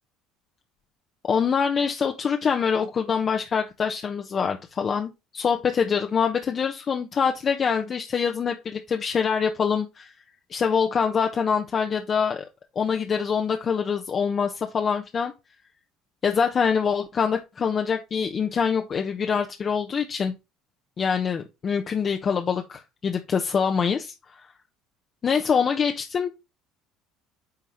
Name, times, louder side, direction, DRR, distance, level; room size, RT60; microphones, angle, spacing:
voice 1, 1.3-10.1 10.5-12.4 12.7-15.3 16.2-20.3 21.0-24.4 25.2-26.3, left 6 dB, 35° left, 0.9 m, -25 dB
9.5 x 3.5 x 4.4 m
cardioid pair, 115°, 0 cm